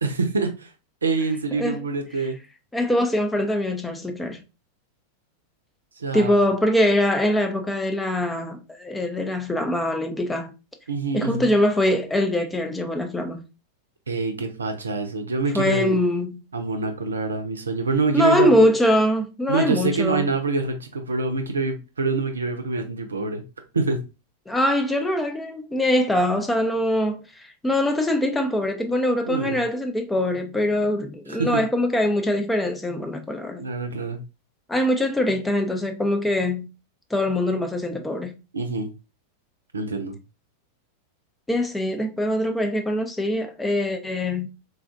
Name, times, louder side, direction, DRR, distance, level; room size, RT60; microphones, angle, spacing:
voice 1, 0.0-0.7 1.0-2.4 6.0-6.3 10.9-11.5 14.1-16.0 16.5-18.6 19.5-23.4 23.7-24.0 29.3-29.6 31.3-31.6 33.6-34.2 38.5-38.9 39.7-40.2, right 3 dB, 75° right, 0.6 m, -25 dB
voice 2, 2.7-4.4 6.1-10.5 11.1-13.4 15.5-16.4 18.1-20.3 24.5-33.6 34.7-36.7 37.1-38.4 41.5-44.5, left 1 dB, 5° left, 0.6 m, -23 dB
3.8 x 2.4 x 2.5 m
figure-of-eight pair, 90°, 0 cm